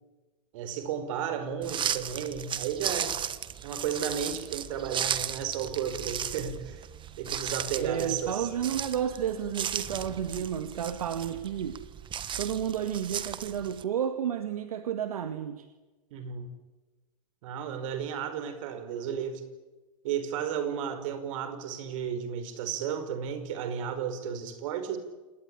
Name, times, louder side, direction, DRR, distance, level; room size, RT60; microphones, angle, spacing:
voice 1, 0.5-3.2 3.6-6.8 7.2-8.5 16.1-16.5 17.4-19.4 20.0-25.0, right 8 dB, 65° right, 10 dB, 5.3 m, -33 dB
sound 1, 1.6-13.8, right 9 dB, 25° right, 1.4 m, -35 dB
voice 2, 7.8-11.8 12.4-15.7, right 9 dB, 85° right, 8 dB, 2.0 m, -31 dB
27.5 x 21.0 x 9.8 m, 1.2 s
hypercardioid pair, 110°, 18 cm